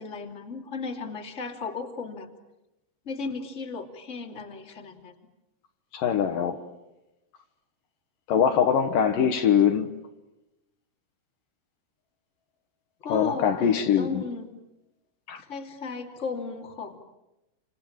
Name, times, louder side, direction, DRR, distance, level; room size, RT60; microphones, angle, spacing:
voice 1, 0.0-2.3 3.0-5.1 9.1-9.5 13.0-14.5 15.4-17.0, left 4 dB, 20° left, 2.5 m, -35 dB
voice 2, 5.9-6.6 8.3-9.9 13.1-14.2 15.3-15.4, left 8 dB, 65° left, 2.5 m, -22 dB
29.5 x 27.0 x 7.4 m
omnidirectional pair, 4.9 m